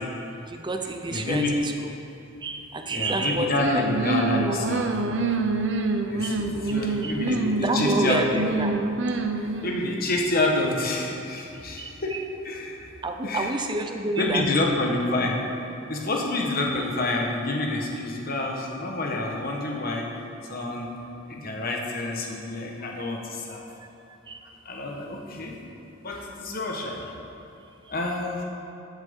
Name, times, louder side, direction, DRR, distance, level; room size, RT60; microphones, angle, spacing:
voice 1, 0.5-1.9 2.4-3.9 4.5-4.6 6.2-6.4 7.0-7.1 7.6-8.7 11.8-12.2 13.0-14.5 24.3-24.4, right 2 dB, 25° right, 5 dB, 0.6 m, -29 dB
voice 2, 1.1-1.5 2.9-5.4 6.1-8.2 9.4-12.1 12.4-12.9 13.2-13.5 14.2-15.4 15.9-20.1 20.5-20.9 21.3-23.6 24.6-25.5 26.0-27.0 27.9-28.4, left 2 dB, 45° left, 0 dB, 1.2 m, -28 dB
sound 1, 3.5-9.9, right 3 dB, 60° right, 0.6 m, -26 dB
13.0 x 7.4 x 3.7 m, 2.8 s
head